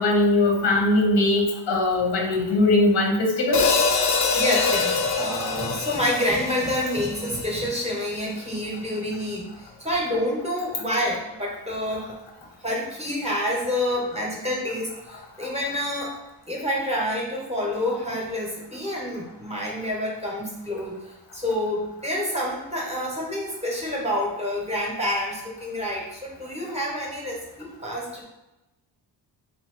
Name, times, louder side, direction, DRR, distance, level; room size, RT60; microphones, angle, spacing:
voice 1, 0.0-3.6, left 2 dB, 80° left, -1 dB, 1.0 m, -20 dB
Hi-hat, 3.5-7.8, left 4 dB, 45° left, 0.4 m, -24 dB
voice 2, 4.3-12.2 12.6-16.1 16.5-21.0 21.3-28.2, left 1 dB, 15° right, -2 dB, 0.7 m, -28 dB
2.7 x 2.7 x 3.0 m, 0.97 s
cardioid pair, 120°, 44 cm